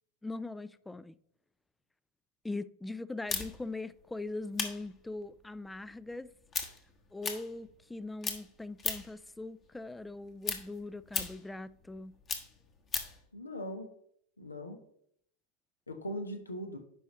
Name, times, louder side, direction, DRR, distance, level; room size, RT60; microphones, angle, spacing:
voice 1, 0.2-1.2 2.4-6.3 7.1-12.1, left 2 dB, 5° left, 0.3 m, -41 dB
sound 1, 3.3-8.0 8.2-9.2 9.6-13.2, left 5 dB, 25° left, 1.2 m, -37 dB
voice 2, 13.3-13.9 14.4-14.8 15.9-16.8, equal, 80° left, 1.1 m, -40 dB
10.0 x 5.4 x 3.1 m
figure-of-eight pair, 90°, 0 cm